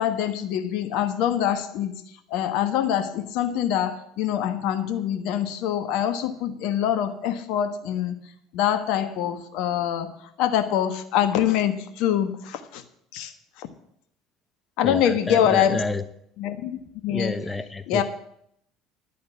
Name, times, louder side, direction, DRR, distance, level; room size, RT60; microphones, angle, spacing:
voice 1, 0.0-1.9 2.3-8.1 8.5-10.1 10.4-12.8 13.1-13.7 14.8-15.8 16.4-17.3 17.9-18.0, left 10 dB, 65° left, 10 dB, 1.3 m, -24 dB
voice 2, 14.8-16.0 17.1-18.0, left 2 dB, 15° left, 12 dB, 1.0 m, -29 dB
11.5 x 8.4 x 8.2 m, 0.70 s
hypercardioid pair, 60°, 0 cm